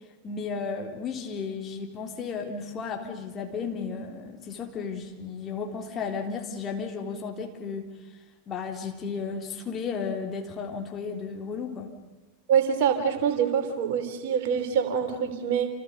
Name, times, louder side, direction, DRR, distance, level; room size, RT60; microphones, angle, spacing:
voice 1, 0.2-7.9 8.5-11.9, left 5 dB, 25° left, 2 dB, 3.7 m, -34 dB
voice 2, 12.5-15.7, right 7 dB, 50° right, 7 dB, 3.6 m, -25 dB
29.0 x 29.0 x 5.5 m, 1.1 s
figure-of-eight pair, 90°, 0 cm